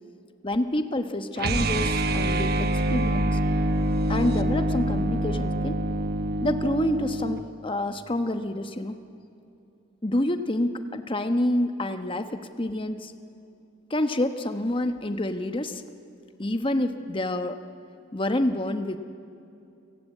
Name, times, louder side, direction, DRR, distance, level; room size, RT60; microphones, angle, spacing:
voice 1, 0.4-3.4 4.1-5.8 6.4-8.9 10.0-13.1 13.9-15.8 16.4-17.5 18.1-19.0, left 1 dB, 30° left, 8 dB, 1.2 m, -27 dB
sound 1, 1.4-7.5, right 1 dB, 55° right, 1.2 m, -25 dB
30.0 x 17.5 x 8.5 m, 2.7 s
head